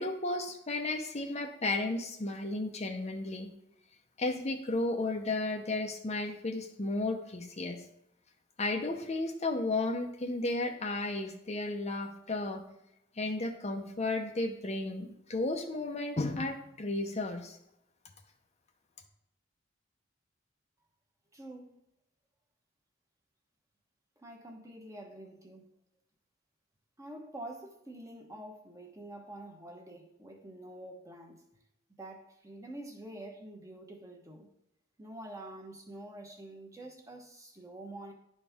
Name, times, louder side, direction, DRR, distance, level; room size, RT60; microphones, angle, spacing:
voice 1, 0.0-3.5 4.2-7.8 8.6-12.7 13.2-17.6, left 2 dB, 35° left, 0.7 m, -33 dB
voice 2, 21.3-21.7 24.2-25.7 27.0-31.5 32.0-34.5 35.0-38.1, right 1 dB, 15° right, 1.1 m, -47 dB
11.0 x 4.3 x 3.5 m
head